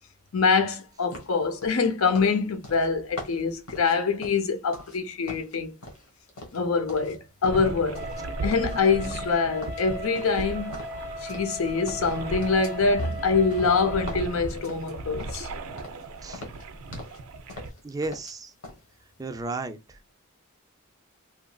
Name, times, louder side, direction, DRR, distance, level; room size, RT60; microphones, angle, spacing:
voice 1, 0.3-5.7 6.5-8.1 8.4-10.8 11.2-15.5, left 4 dB, 70° left, 0.6 m, -25 dB
sound 1, 1.1-5.0 5.3-7.2 7.4-8.2 8.5-9.3 9.6-11.6 11.9-15.5 15.8-16.0 16.3-17.2 17.5-18.3 18.6-18.8, left 1 dB, 90° left, 1.1 m, -43 dB
sound 2, 7.5-17.7, right 3 dB, 85° right, 0.5 m, -37 dB
Wind instrument woodwind instrument, 7.9-14.3, left 1 dB, 30° left, 0.8 m, -38 dB
voice 2, 17.8-18.5 19.2-19.8, right 3 dB, 15° right, 0.3 m, -33 dB
2.9 x 2.4 x 2.2 m
head